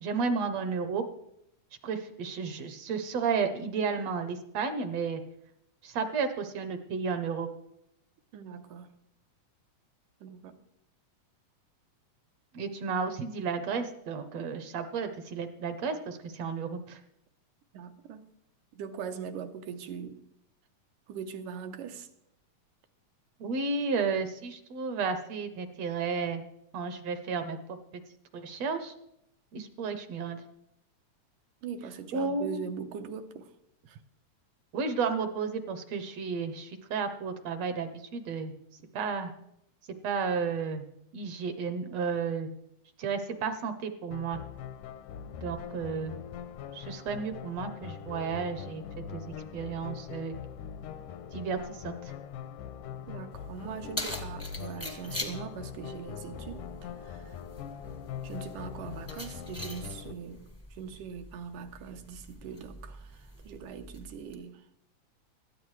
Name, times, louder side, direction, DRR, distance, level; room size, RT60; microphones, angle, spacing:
voice 1, 0.0-1.1 1.8-5.2 5.8-7.5 12.5-17.0 23.4-26.4 26.7-27.8 28.3-28.9 29.5-30.4 32.1-32.6 34.7-38.5 38.9-39.3 40.0-40.8 41.1-42.5 43.0-44.4 45.4-46.1 46.7-49.2 49.5-50.3 51.3-52.1, right 5 dB, 70° right, 8 dB, 1.7 m, -32 dB
voice 2, 8.3-8.9 10.2-10.6 17.7-18.2 18.8-20.2 21.1-22.1 31.6-33.5 33.9-34.0 53.1-57.4 58.2-60.4 60.7-64.6, right 7 dB, 85° right, 7 dB, 2.5 m, -41 dB
sound 1, 44.1-60.1, left 8 dB, 85° left, 2.3 m, -42 dB
Keys jangling, 53.3-64.3, left 1 dB, 20° left, 0.3 m, -44 dB
18.0 x 13.0 x 3.2 m, 0.78 s
omnidirectional pair, 3.6 m